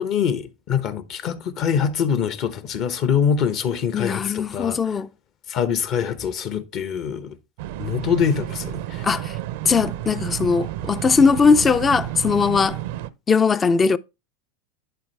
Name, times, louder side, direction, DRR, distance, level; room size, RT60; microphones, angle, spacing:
voice 1, 0.0-5.0 5.5-7.4 7.8-9.1, left 7 dB, 50° left, 1.0 m, -24 dB
voice 2, 3.9-5.1 9.0-9.3 9.7-12.8 13.3-14.0, left 5 dB, 25° left, 0.4 m, -19 dB
sound 1, 7.6-13.1, right 13 dB, 65° right, 0.5 m, -31 dB
10.5 x 4.5 x 3.2 m
hypercardioid pair, 95°, 0 cm